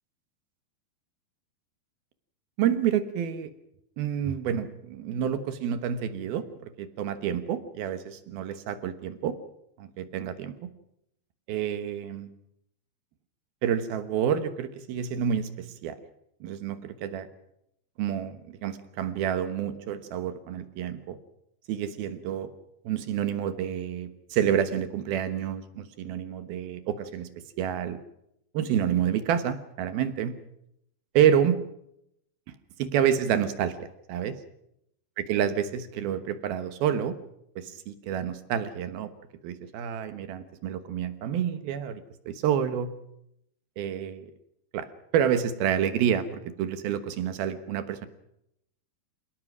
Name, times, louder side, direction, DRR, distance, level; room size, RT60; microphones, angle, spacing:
voice 1, 2.6-3.5 4.0-9.4 9.8-10.7 11.5-12.3 13.6-15.9 16.4-17.3 18.0-21.2 21.7-22.5 22.8-27.3 27.6-28.0 28.5-30.4 31.1-31.6 32.8-34.4 35.2-37.2 37.6-39.1 39.4-43.0 43.8-44.3 44.7-44.9 45.1-48.1, right 9 dB, 70° right, 10 dB, 2.8 m, -28 dB
27.5 x 18.5 x 6.2 m, 0.77 s
omnidirectional pair, 5.1 m